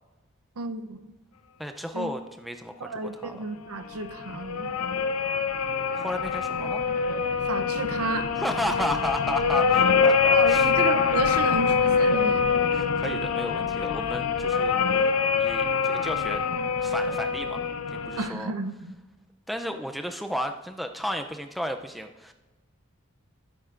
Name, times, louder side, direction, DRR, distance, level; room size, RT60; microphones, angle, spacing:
voice 1, 0.6-1.0 1.9-2.1 2.8-4.8 7.4-8.3 10.3-12.5 18.2-19.0, right 3 dB, 85° right, 10 dB, 0.7 m, -32 dB
voice 2, 1.6-3.4 5.9-6.8 8.4-10.7 12.7-14.8 15.4-16.4 16.8-17.6 17.9-18.5 19.5-22.3, equal, ahead, 6 dB, 0.4 m, -33 dB
sound 1, 3.9-18.3, left 5 dB, 80° left, 0.6 m, -24 dB
14.5 x 7.7 x 2.5 m, 1.1 s
head